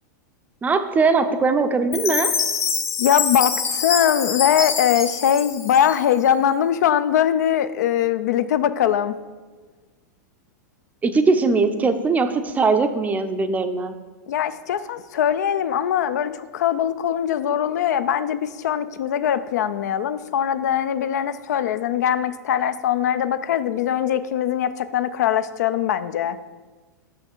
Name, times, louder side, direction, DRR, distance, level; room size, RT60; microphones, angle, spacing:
voice 1, 0.6-2.3 11.0-13.9, right 4 dB, 15° right, 8 dB, 0.5 m, -20 dB
Chime, 1.9-6.3, left 6 dB, 30° left, 0.8 m, -25 dB
voice 2, 3.0-9.1 14.3-26.4, left 9 dB, 70° left, 13 dB, 0.3 m, -21 dB
5.8 x 5.6 x 4.4 m, 1.3 s
hypercardioid pair, 105°, 10 cm